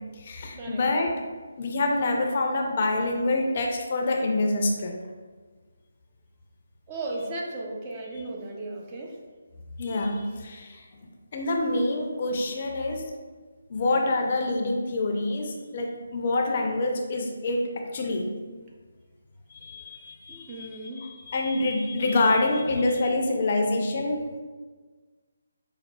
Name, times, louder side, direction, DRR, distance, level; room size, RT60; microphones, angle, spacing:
voice 1, 0.2-1.1 1.6-4.9 9.8-10.8 11.3-13.1 13.7-18.2 19.5-24.4, left 2 dB, 45° left, 2 dB, 0.4 m, -26 dB
voice 2, 6.9-9.2 20.3-21.1, right 2 dB, 25° right, -1 dB, 0.5 m, -35 dB
5.1 x 2.3 x 2.2 m, 1.4 s
figure-of-eight pair, 150°, 0 cm